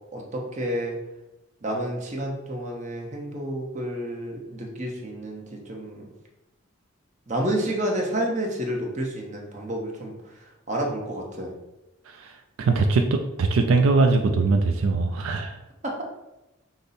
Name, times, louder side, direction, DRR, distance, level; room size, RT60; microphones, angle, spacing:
voice 1, 0.1-0.9 1.6-6.0 7.3-10.1 10.7-11.5 15.8-16.0, right 1 dB, 35° right, 0 dB, 0.7 m, -30 dB
voice 2, 12.6-15.6, right 3 dB, 80° right, 5 dB, 0.4 m, -21 dB
5.1 x 2.0 x 4.0 m, 0.96 s
head